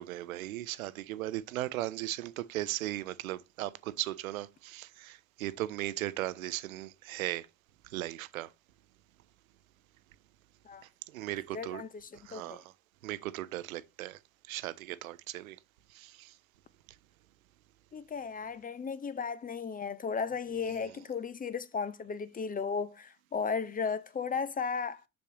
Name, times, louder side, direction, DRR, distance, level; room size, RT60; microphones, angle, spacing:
voice 1, 0.0-7.5 7.8-8.5 11.1-11.8 12.1-12.7 13.0-15.6 15.9-16.4 20.8-20.9, right 15 dB, 80° right, 0.6 m, -37 dB
voice 2, 11.5-12.6 17.9-25.0, left 5 dB, 20° left, 0.6 m, -35 dB
7.1 x 6.4 x 2.9 m
hypercardioid pair, 60°, 41 cm